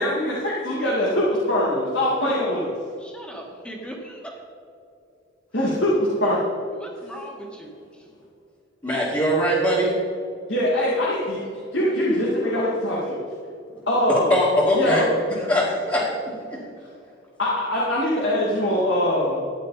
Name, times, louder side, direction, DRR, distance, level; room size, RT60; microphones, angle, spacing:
voice 1, 0.0-2.7 5.5-6.4 10.5-13.2 13.9-14.4 14.7-15.1 17.4-19.4, left 1 dB, 70° left, -6 dB, 2.4 m, -22 dB
voice 2, 3.0-4.3 6.7-7.7, right 1 dB, 5° left, 0 dB, 1.9 m, -39 dB
voice 3, 8.8-9.9 14.1-16.6, equal, 20° left, -9 dB, 2.3 m, -22 dB
14.0 x 10.0 x 4.2 m, 2.5 s
head